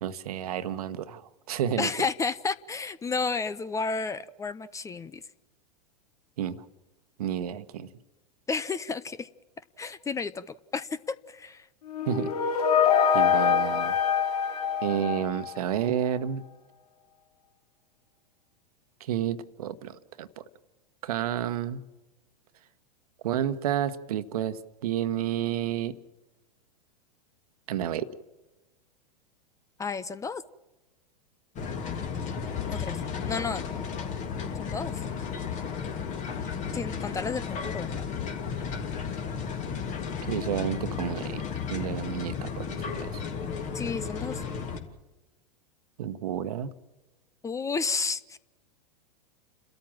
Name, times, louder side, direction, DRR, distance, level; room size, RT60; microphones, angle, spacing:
voice 1, 0.0-1.2 1.5-1.9 6.4-6.6 7.2-7.9 12.1-12.6 13.1-13.9 14.8-16.4 19.0-20.4 21.0-21.8 23.2-25.9 27.7-28.1 40.3-41.4 41.7-43.2 46.0-46.7, right 10 dB, 60° right, 13 dB, 1.3 m, -30 dB
voice 2, 1.8-5.2 8.5-9.3 9.8-10.5 10.7-11.7 29.8-30.4 32.7-33.0 33.2-33.6 34.6-34.9 36.7-38.1 43.7-44.4 47.4-48.4, left 4 dB, 15° left, 17 dB, 0.6 m, -31 dB
sound 1, 11.9-15.8, left 7 dB, 65° left, 2.1 m, -24 dB
sound 2, 31.6-44.8, left 6 dB, 35° left, 2.8 m, -34 dB
30.0 x 13.5 x 7.4 m, 1.1 s
figure-of-eight pair, 95°, 21 cm